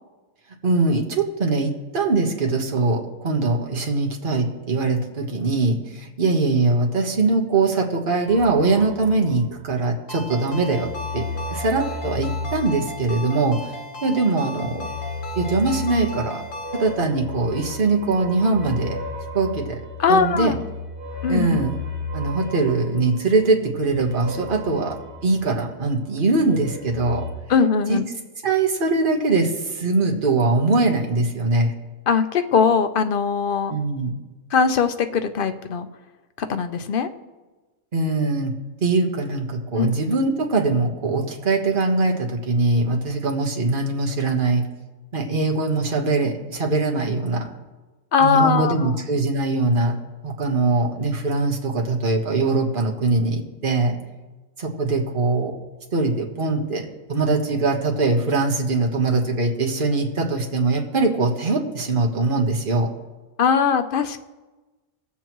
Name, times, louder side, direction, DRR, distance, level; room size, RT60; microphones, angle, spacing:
voice 1, 0.6-13.6 14.0-14.9 15.4-16.4 16.7-19.0 19.3-19.8 20.1-20.5 21.3-21.8 22.1-27.3 27.9-28.0 28.4-31.7 33.7-34.2 37.9-38.5 38.8-44.7 45.1-47.5 48.2-50.0 50.2-54.0 54.6-55.5 55.9-62.9, right 3 dB, 45° right, 1 dB, 1.5 m, -22 dB
sound 1, 8.3-9.9 10.2-13.7 14.6-26.0 26.3-27.3, left 2 dB, 20° left, 3.7 m, -35 dB
Ringtone, 10.1-17.0, left 2 dB, 85° left, 1.7 m, -36 dB
voice 2, 20.0-20.5 21.2-21.6 27.5-28.0 32.1-33.8 34.5-35.9 36.4-37.1 39.8-39.9 48.1-48.9 63.4-64.2, left 6 dB, 50° left, 9 dB, 0.8 m, -20 dB
21.0 x 7.2 x 3.1 m, 1.2 s
omnidirectional pair, 1.3 m